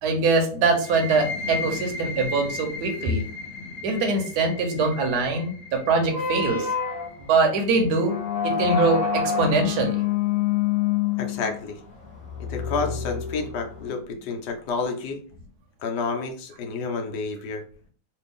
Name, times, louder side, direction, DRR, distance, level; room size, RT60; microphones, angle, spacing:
voice 1, 0.0-3.2 3.8-6.7 7.3-8.1 8.4-10.0, right 3 dB, 70° right, 3 dB, 1.3 m, -23 dB
sound 1, 0.8-8.2, left 3 dB, 60° left, 0.8 m, -36 dB
sound 2, 6.1-13.9, left 8 dB, 45° left, 1.1 m, -27 dB
voice 2, 11.2-11.8 12.5-15.2 15.8-17.6, left 4 dB, 80° left, 4 dB, 1.3 m, -30 dB
3.3 x 2.5 x 3.5 m, 0.43 s
omnidirectional pair, 1.8 m